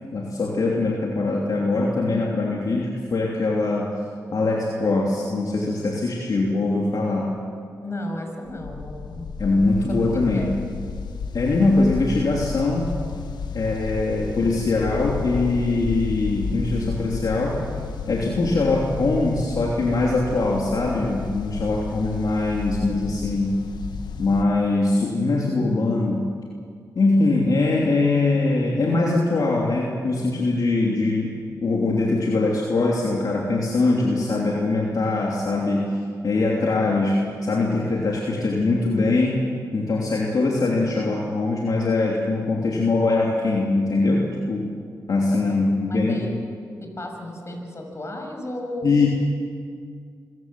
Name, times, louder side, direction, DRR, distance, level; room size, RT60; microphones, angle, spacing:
voice 1, 0.1-4.0 4.3-7.4 9.4-10.5 11.3-12.9 13.5-17.6 18.1-23.6 24.2-26.3 26.9-31.3 31.6-36.0 36.2-39.4 39.7-44.7 45.1-46.3 48.8-49.1, left 2 dB, 65° left, -2 dB, 3.1 m, -22 dB
voice 2, 7.8-9.3 9.5-10.5 45.4-45.6 45.9-46.3 46.8-48.9, left 1 dB, 40° left, 3 dB, 6.2 m, -34 dB
sound 1, 8.5-24.4, left 5 dB, 85° left, 1.2 m, -32 dB
25.5 x 16.0 x 7.7 m, 2.2 s
cardioid pair, 50°, 7 cm